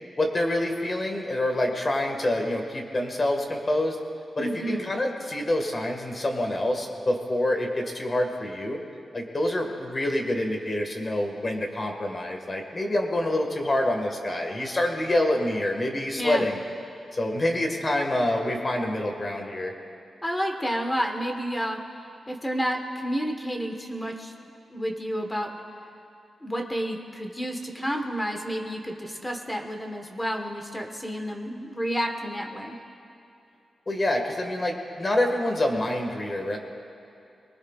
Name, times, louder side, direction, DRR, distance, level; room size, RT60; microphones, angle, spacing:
voice 1, 0.2-4.0 4.4-8.8 9.1-16.6 17.1-19.7 33.9-36.6, left 1 dB, 25° left, 3 dB, 1.7 m, -26 dB
voice 2, 4.4-4.9 16.2-16.4 20.2-21.8 22.3-24.3 24.7-25.5 26.4-32.8, equal, 10° left, 3 dB, 1.3 m, -30 dB
28.0 x 19.5 x 2.4 m, 2.8 s
wide cardioid pair, 170°, 0 cm